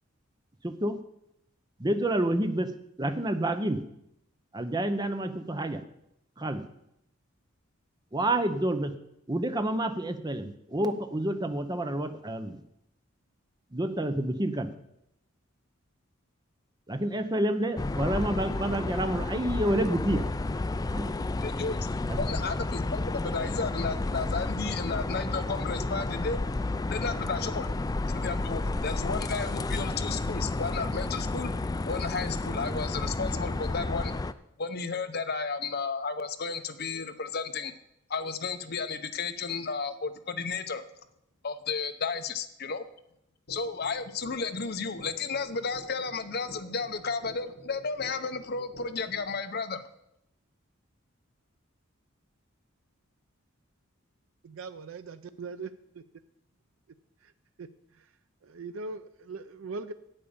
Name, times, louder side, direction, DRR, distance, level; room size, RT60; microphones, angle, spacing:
voice 1, 0.6-1.0 1.8-2.7 3.0-3.8 4.5-5.8 6.4-6.6 8.1-8.9 9.3-12.6 13.7-14.7 16.9-20.3 20.9-21.1 22.1-22.2, right 1 dB, 20° right, 9 dB, 0.8 m, -29 dB
sound 1, 17.8-34.3, left 2 dB, 20° left, 0.3 m, -31 dB
voice 2, 21.4-21.9 22.2-26.5 26.9-27.7 28.1-31.5 31.9-34.1 34.6-37.7 38.1-40.8 41.4-42.8 43.5-49.8, left 4 dB, 50° left, 9 dB, 0.8 m, -33 dB
sound 2, 43.5-49.5, left 2 dB, 80° left, 1.3 m, -50 dB
voice 3, 54.4-55.7 57.2-57.3 57.6-58.1 58.4-59.9, right 4 dB, 75° right, 11 dB, 0.5 m, -40 dB
8.8 x 8.6 x 7.1 m, 0.79 s
head